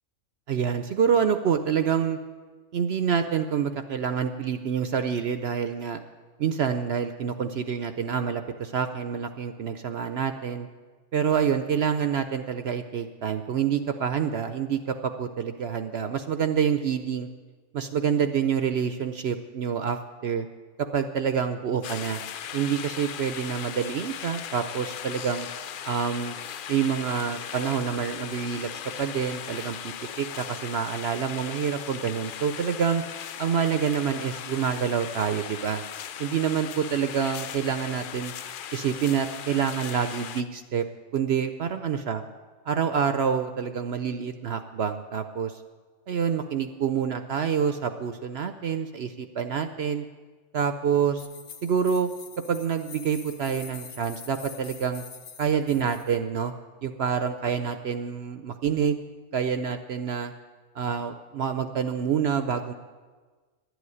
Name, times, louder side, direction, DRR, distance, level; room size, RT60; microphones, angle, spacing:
voice 1, 0.5-2.2 2.7-6.0 6.4-10.7 11.1-17.3 17.7-20.5 20.8-22.2 22.5-25.5 25.8-26.4 26.7-28.7 29.0-33.0 33.4-35.8 36.2-38.3 38.7-40.8 41.1-42.2 42.7-45.6 46.1-50.1 50.5-51.3 51.6-52.1 52.5-55.0 55.4-56.5 56.8-59.0 59.3-60.3 60.8-62.7, right 7 dB, 60° right, 9 dB, 0.7 m, -27 dB
Water in the park, 21.8-40.4, left 9 dB, 85° left, 0.4 m, -38 dB
sound 1, 51.2-56.2, left 6 dB, 70° left, 1.4 m, -45 dB
11.5 x 8.1 x 9.7 m, 1.4 s
omnidirectional pair, 1.5 m